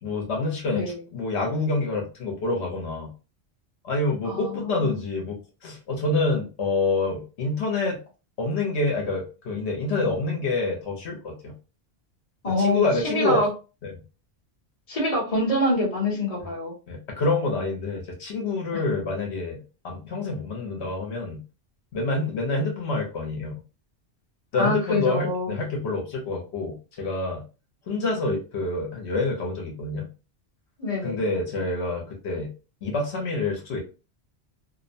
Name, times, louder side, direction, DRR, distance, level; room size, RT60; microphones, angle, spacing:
voice 1, 0.0-3.1 3.8-8.0 8.4-11.5 12.6-13.4 13.8-13.9 16.9-19.6 19.8-21.4 21.9-23.5 24.5-27.4 27.9-30.1 31.0-32.5 32.8-33.8, left 3 dB, 80° left, 0 dB, 1.1 m, -27 dB
voice 2, 0.6-1.0 4.2-5.0 12.4-13.5 14.9-16.7 18.7-18.8 24.6-25.5 30.8-31.2, left 2 dB, 35° left, -3 dB, 1.1 m, -25 dB
2.7 x 2.1 x 2.6 m, 0.32 s
omnidirectional pair, 1.1 m